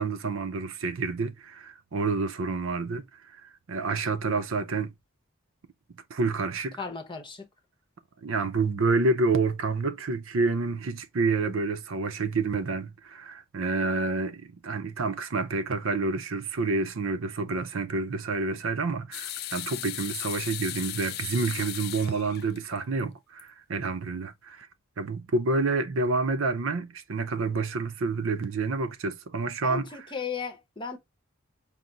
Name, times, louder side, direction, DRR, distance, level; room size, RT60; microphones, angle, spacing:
voice 1, 0.0-3.0 3.3-4.9 6.1-6.8 8.2-24.7 25.0-29.9, right 3 dB, 65° right, 0.6 m, -28 dB
voice 2, 6.8-7.5 29.6-31.0, left 5 dB, 25° left, 0.8 m, -35 dB
sound 1, 19.1-23.0 23.4-23.5 24.6-24.7, left 13 dB, 50° left, 0.3 m, -36 dB
5.7 x 2.0 x 3.8 m
head